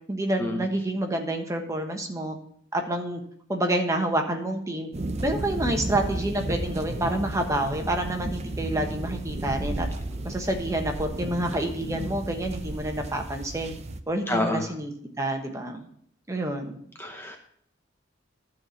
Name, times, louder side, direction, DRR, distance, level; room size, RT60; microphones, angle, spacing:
voice 1, 0.1-2.4 2.7-3.2 3.5-4.9 5.2-9.9 10.2-13.7 14.1-14.9 15.2-15.8 16.3-16.8, right 1 dB, 15° right, 3 dB, 1.3 m, -28 dB
sound 1, 4.9-14.0, right 2 dB, 35° right, 0.7 m, -33 dB
voice 2, 14.3-14.6 17.0-17.4, left 1 dB, 10° left, 3 dB, 0.9 m, -27 dB
12.5 x 4.3 x 7.9 m, 0.65 s
head